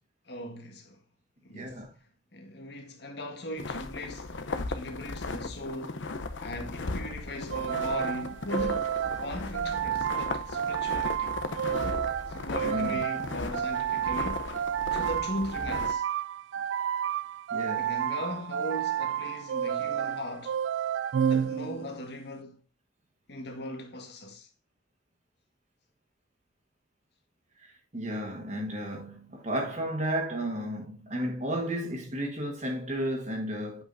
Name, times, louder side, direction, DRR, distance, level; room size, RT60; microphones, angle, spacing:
voice 1, 0.3-1.0 1.4-1.8 2.3-6.0 6.4-11.4 12.3-14.5 14.9-16.1 17.7-20.6 21.3-22.6 23.3-24.5, left 1 dB, 65° left, 1.5 m, -39 dB
voice 2, 1.5-1.9 12.6-13.0 17.5-17.9 27.6-33.8, equal, 40° right, 1.4 m, -33 dB
sound 1, 3.6-15.9, left 3 dB, 85° left, 0.8 m, -36 dB
sound 2, 7.5-22.0, right 9 dB, 80° right, 0.3 m, -31 dB
8.2 x 5.3 x 2.6 m
head